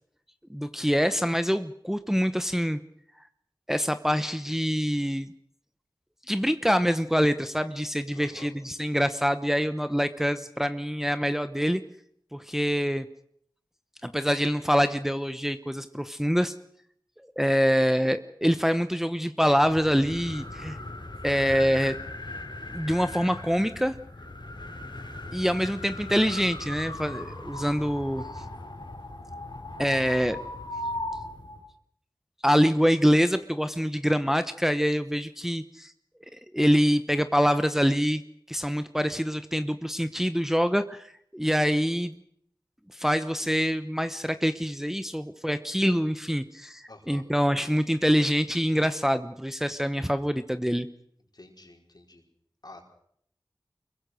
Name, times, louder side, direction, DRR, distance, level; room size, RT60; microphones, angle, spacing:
voice 1, 0.5-2.8 3.7-5.3 6.3-11.8 12.3-13.1 14.0-16.5 17.4-20.8 21.2-22.0 22.7-24.0 25.3-28.4 29.8-30.4 32.4-35.9 36.3-38.2 38.5-42.2 42.9-50.9, equal, 5° right, 10 dB, 1.0 m, -25 dB
voice 2, 8.1-8.5 46.9-47.2 51.3-52.2 52.6-52.8, left 2 dB, 55° left, 2 dB, 4.8 m, -48 dB
sound 1, 19.5-31.6, left 2 dB, 75° left, 4.5 m, -38 dB
25.0 x 22.5 x 6.4 m, 0.68 s
wide cardioid pair, 45°, 8 cm